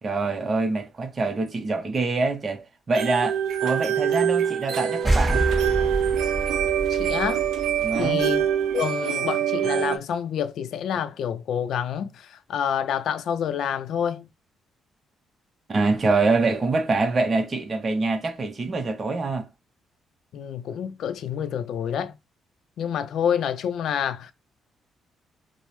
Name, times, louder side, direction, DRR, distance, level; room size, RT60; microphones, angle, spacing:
voice 1, 0.0-5.5 7.8-8.2 15.7-19.5, right 3 dB, 35° right, 0.6 m, -25 dB
sound 1, 2.9-10.0, right 9 dB, 80° right, 0.4 m, -24 dB
sound 2, 5.0-8.5, right 1 dB, 5° right, 2.4 m, -27 dB
voice 2, 6.9-7.4 8.0-8.5 8.7-14.3 20.3-22.2 22.8-24.3, left 8 dB, 75° left, 0.4 m, -28 dB
5.1 x 2.0 x 3.1 m
cardioid pair, 90°, 0 cm